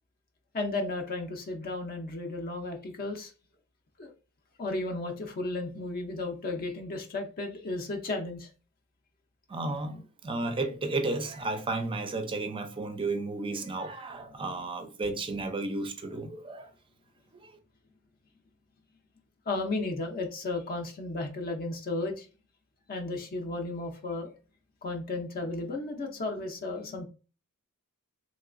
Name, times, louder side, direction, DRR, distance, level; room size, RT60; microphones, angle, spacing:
voice 1, 0.5-3.3 4.0-4.1 4.6-8.5 19.5-22.3 22.9-24.3 24.8-27.1, left 2 dB, 40° left, 0.5 m, -34 dB
voice 2, 9.5-16.7 17.3-17.5, right 2 dB, 25° right, 0.4 m, -33 dB
3.1 x 2.8 x 2.4 m
head